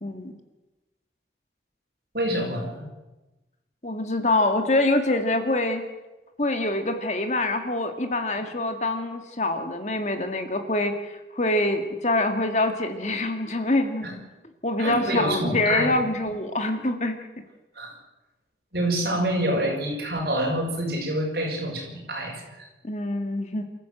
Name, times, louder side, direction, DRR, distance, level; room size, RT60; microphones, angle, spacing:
voice 1, 0.0-0.3 3.8-5.8 6.4-14.2 14.6-17.2 22.8-23.6, left 2 dB, 40° left, 6 dB, 2.0 m, -25 dB
voice 2, 2.1-2.9 14.0-14.1 14.8-16.0 16.2-16.3 17.7-17.9 18.7-22.7, right 1 dB, 60° right, 0 dB, 6.5 m, -27 dB
28.5 x 14.5 x 7.9 m, 1.1 s
head